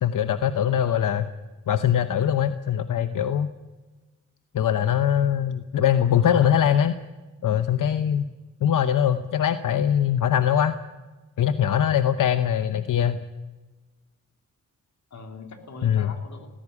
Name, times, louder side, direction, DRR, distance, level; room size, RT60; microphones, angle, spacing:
voice 1, 0.0-1.3 1.7-3.5 4.5-6.9 7.4-8.2 8.6-10.7 11.4-13.2 15.8-16.1, left 9 dB, 90° left, 10 dB, 0.9 m, -22 dB
voice 2, 0.9-1.3 6.3-6.7 15.1-16.5, left 3 dB, 65° left, 4 dB, 3.5 m, -42 dB
19.0 x 15.5 x 9.7 m, 1.2 s
wide cardioid pair, 115°, 31 cm